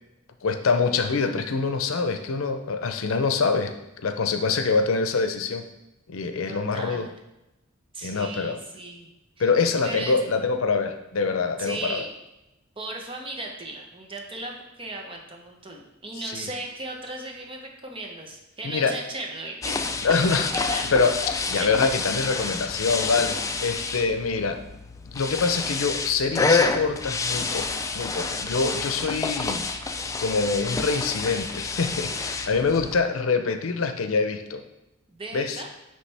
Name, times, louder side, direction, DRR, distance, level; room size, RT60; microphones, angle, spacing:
voice 1, 0.4-5.6 6.1-7.1 8.0-8.6 9.4-12.0 16.2-16.5 18.6-18.9 20.0-24.6 25.1-27.7 27.9-29.6 30.2-34.6 35.3-35.6, left 4 dB, 85° left, 7 dB, 0.6 m, -25 dB
voice 2, 6.5-7.1 7.9-9.1 9.4-9.5 9.8-10.2 11.6-12.1 12.8-20.9 21.5-21.7 32.5-32.6 35.1-35.7, right 2 dB, 25° right, 1 dB, 0.9 m, -36 dB
sound 1, 19.6-33.0, left 4 dB, 15° left, 0.3 m, -28 dB
9.6 x 3.3 x 3.4 m, 0.95 s
head